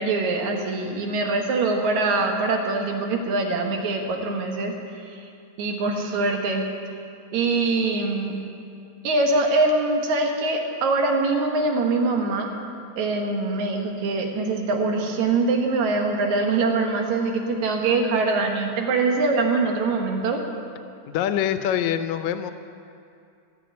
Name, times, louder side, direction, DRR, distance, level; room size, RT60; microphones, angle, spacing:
voice 1, 0.0-4.7 5.1-5.3 5.6-6.7 7.3-8.4 9.0-12.5 13.0-20.4, right 3 dB, 75° right, 2 dB, 2.7 m, -23 dB
voice 2, 21.1-22.5, left 10 dB, 80° left, 10 dB, 1.9 m, -24 dB
14.5 x 7.5 x 9.4 m, 2.5 s
omnidirectional pair, 3.3 m